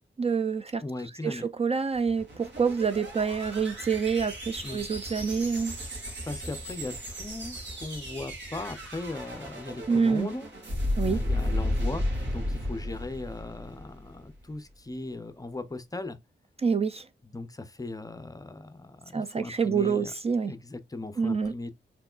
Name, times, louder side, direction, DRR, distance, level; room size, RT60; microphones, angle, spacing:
voice 1, 0.2-0.8 1.2-5.8 9.9-10.3 11.0-11.2 16.6-17.1 19.1-20.5 21.2-21.5, right 5 dB, 30° right, 0.3 m, -27 dB
voice 2, 0.8-1.5 4.6-4.8 6.3-10.5 11.1-16.2 17.2-20.1 20.5-21.7, left 2 dB, 20° left, 0.5 m, -38 dB
sound 1, 2.0-14.3, left 1 dB, 65° right, 2.5 m, -34 dB
4.6 x 3.6 x 2.3 m
wide cardioid pair, 105°, 20 cm